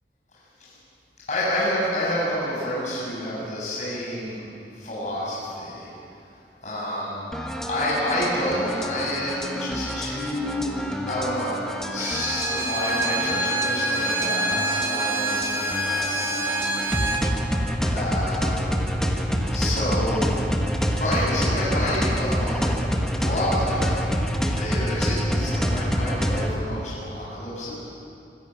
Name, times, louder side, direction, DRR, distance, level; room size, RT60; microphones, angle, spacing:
voice 1, 1.3-4.5 4.7-5.9 6.6-7.2 7.7-11.6 11.9-16.3 17.9-18.8 19.5-20.5 20.9-27.7, left 1 dB, 40° left, -7 dB, 7.4 m, -29 dB
sound 1, 7.3-26.5, equal, 5° left, 1.5 m, -27 dB
Bowed string instrument, 12.0-17.3, right 1 dB, 15° right, 1.6 m, -26 dB
25.0 x 15.5 x 9.3 m, 2.7 s
head